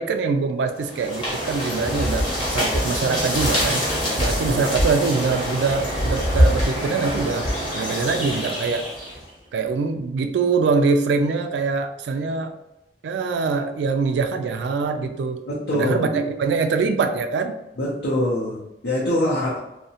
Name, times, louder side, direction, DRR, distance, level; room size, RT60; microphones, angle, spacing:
voice 1, 0.0-3.8 4.2-7.5 7.7-8.8 9.5-12.5 13.0-15.4 15.7-17.6, right 4 dB, 80° right, 7 dB, 0.3 m, -23 dB
sound 1, 0.8-9.2, equal, 30° left, 0.8 m, -24 dB
voice 2, 15.5-16.1 17.8-19.6, left 1 dB, 75° left, -6 dB, 0.6 m, -24 dB
2.7 x 2.1 x 2.7 m, 0.89 s
head